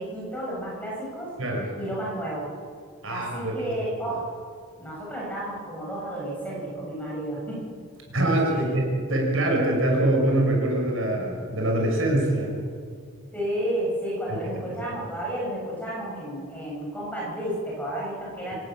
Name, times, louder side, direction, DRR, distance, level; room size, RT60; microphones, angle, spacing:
voice 1, 0.0-1.3 1.8-2.5 3.1-4.2 4.8-7.6 8.5-8.8 13.3-18.5, right 1 dB, 5° left, -5 dB, 7.7 m, -32 dB
voice 2, 3.0-3.7 8.1-12.5, right 1 dB, 70° right, 0 dB, 6.5 m, -24 dB
26.0 x 14.5 x 9.1 m, 2.1 s
head